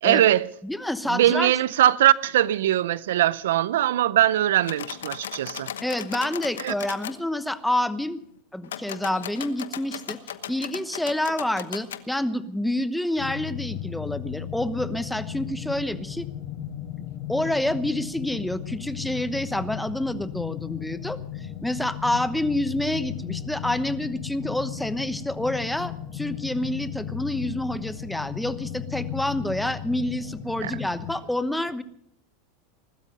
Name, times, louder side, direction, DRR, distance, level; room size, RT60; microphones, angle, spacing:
voice 1, 0.0-0.5 1.1-5.7 6.6-6.7 30.6-30.7, right 12 dB, 80° right, 0.5 m, -21 dB
voice 2, 0.6-1.5 5.8-8.2 8.5-10.2 10.5-16.3 17.3-31.8, left 1 dB, 5° left, 1.0 m, -28 dB
sound 1, 4.6-7.2 8.6-12.0, left 10 dB, 90° left, 1.0 m, -37 dB
sound 2, 13.2-31.1, left 10 dB, 60° left, 6.1 m, -35 dB
20.5 x 12.5 x 5.4 m
hypercardioid pair, 110°, 0 cm